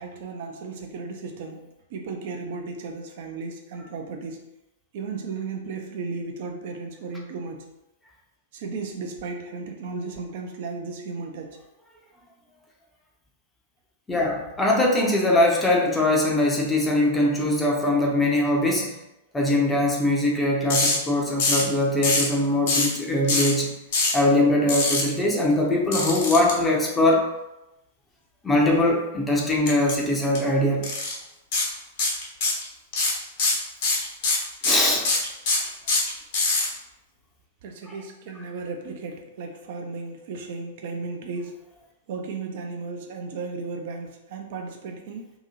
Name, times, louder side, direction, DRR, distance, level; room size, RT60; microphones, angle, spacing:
voice 1, 0.0-1.6 1.9-4.5 4.9-7.7 8.5-11.6 37.6-41.5 42.1-45.3, right 4 dB, 55° right, 3 dB, 0.6 m, -35 dB
voice 2, 14.1-19.0 19.3-23.7 24.1-27.3 28.4-30.9 34.6-35.1 37.8-38.0, left 1 dB, 10° left, -2 dB, 0.8 m, -22 dB
sound 1, 20.7-21.0 21.4-21.7 22.0-22.3 22.7-22.9 23.3-23.5 23.9-24.2 24.7-25.0 25.9-26.5 29.7-29.9 30.2-30.4 30.8-31.1 31.5-31.7 32.0-32.6 32.9-36.7, left 3 dB, 55° left, 1.2 m, -23 dB
2.9 x 2.6 x 4.0 m, 0.91 s
figure-of-eight pair, 100°, 0 cm